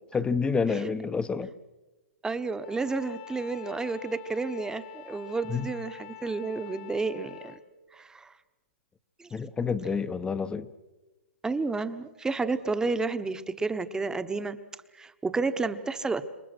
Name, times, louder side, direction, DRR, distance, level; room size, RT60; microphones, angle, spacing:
voice 1, 0.1-1.5 5.5-5.7 9.3-10.7, left 5 dB, 15° left, 0.9 m, -28 dB
voice 2, 2.2-7.6 7.9-8.3 9.2-9.3 11.4-14.6 14.9-16.2, right 3 dB, 10° right, 1.1 m, -31 dB
Bowed string instrument, 2.6-7.6, left 15 dB, 55° left, 2.3 m, -46 dB
27.5 x 23.0 x 6.2 m
hypercardioid pair, 130°, 7 cm